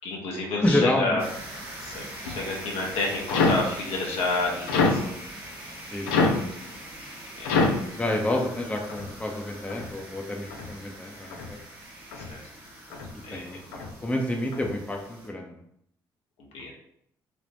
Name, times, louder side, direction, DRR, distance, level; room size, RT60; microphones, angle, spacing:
voice 1, 0.0-1.2 1.8-5.1 6.7-8.4 12.1-12.4 13.2-13.6 16.5-16.7, left 2 dB, 65° left, -1 dB, 0.9 m, -31 dB
voice 2, 0.6-1.2 5.9-6.6 8.0-11.6 13.3-15.5, left 1 dB, 10° left, 1 dB, 0.7 m, -29 dB
sound 1, 1.2-15.3, right 1 dB, 80° right, 1.3 m, -43 dB
sound 2, 2.2-2.6 3.3-3.7 4.7-5.1 6.1-6.5 7.4-7.9 8.9-9.1 9.7-9.9 10.5-10.7 11.3-11.5 12.1-12.3 12.9-13.2 13.7-14.0 14.5-14.8, left 3 dB, 85° left, 0.4 m, -25 dB
3.5 x 2.4 x 2.6 m, 0.72 s
hypercardioid pair, 45°, 11 cm